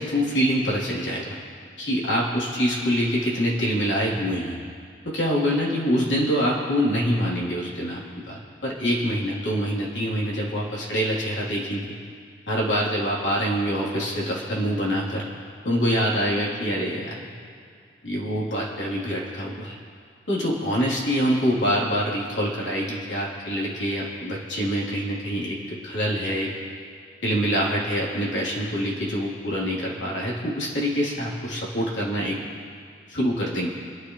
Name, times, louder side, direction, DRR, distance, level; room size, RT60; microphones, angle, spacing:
voice 1, 0.0-1.4 1.8-4.6 5.0-11.9 12.5-15.3 15.6-17.3 18.0-19.7 20.3-26.5 27.2-32.4 33.1-33.7, equal, 80° left, -5 dB, 3.4 m, -25 dB
29.5 x 10.5 x 3.2 m, 2.2 s
head